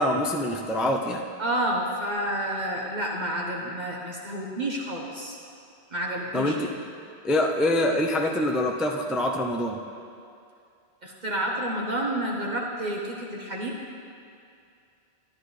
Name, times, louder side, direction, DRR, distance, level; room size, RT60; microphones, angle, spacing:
voice 1, 0.0-1.2 6.3-6.7 7.2-9.8, left 1 dB, ahead, 2 dB, 0.3 m, -25 dB
voice 2, 1.4-5.4 5.9-6.5 11.0-13.8, right 1 dB, 45° right, -2 dB, 1.1 m, -29 dB
13.0 x 10.0 x 3.3 m, 2.4 s
omnidirectional pair, 1.1 m